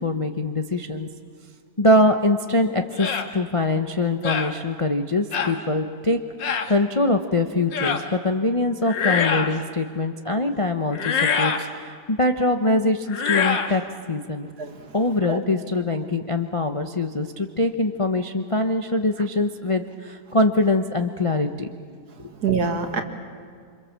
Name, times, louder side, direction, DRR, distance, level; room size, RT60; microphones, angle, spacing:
voice 1, 0.0-1.1 1.8-13.8 14.1-14.5 14.9-21.7 22.2-22.3, left 2 dB, 30° left, 5 dB, 0.6 m, -23 dB
sound 1, 3.0-3.3 4.2-4.5 5.3-5.6 6.4-6.7 7.7-8.0 8.8-9.6 10.9-11.7 13.1-13.7, left 6 dB, 80° left, 2.1 m, -24 dB
voice 2, 14.4-14.8 15.3-15.4 22.4-23.0, right 5 dB, 60° right, 6 dB, 2.3 m, -25 dB
27.5 x 25.5 x 7.4 m, 2.1 s
omnidirectional pair, 2.0 m